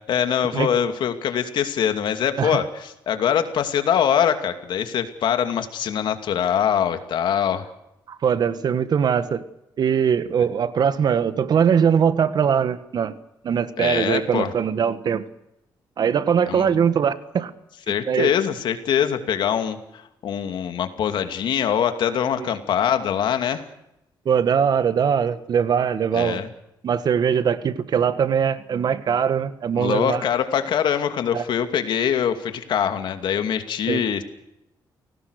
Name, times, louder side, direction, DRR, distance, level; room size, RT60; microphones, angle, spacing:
voice 1, 0.0-7.6 13.8-14.5 16.5-16.7 17.9-19.8 20.2-23.6 26.1-26.5 29.7-34.2, left 8 dB, 75° left, 8 dB, 2.5 m, -23 dB
voice 2, 8.1-9.4 9.8-13.1 13.4-15.2 16.0-17.5 18.1-18.3 22.4-22.5 24.2-26.4 26.8-30.2 31.3-31.4 33.9-34.0, right 7 dB, 55° right, 13 dB, 1.6 m, -21 dB
28.5 x 18.5 x 6.6 m, 0.85 s
cardioid pair, 100°, 8 cm